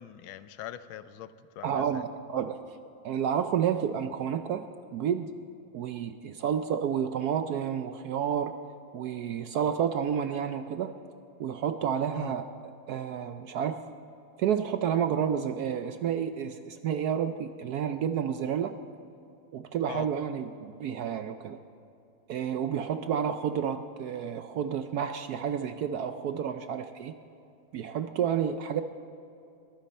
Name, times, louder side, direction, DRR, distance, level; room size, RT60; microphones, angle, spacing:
voice 1, 0.0-2.0 12.1-12.4 19.9-20.1, left 11 dB, 85° left, 13 dB, 1.5 m, -42 dB
voice 2, 1.6-2.6 3.0-4.7 4.9-5.3 5.7-8.5 8.9-11.0 11.4-12.4 12.9-13.8 14.4-18.7 19.5-21.6 22.3-27.1 27.7-28.8, right 8 dB, 75° right, 9 dB, 0.9 m, -30 dB
21.5 x 14.5 x 4.3 m, 2.7 s
omnidirectional pair, 2.2 m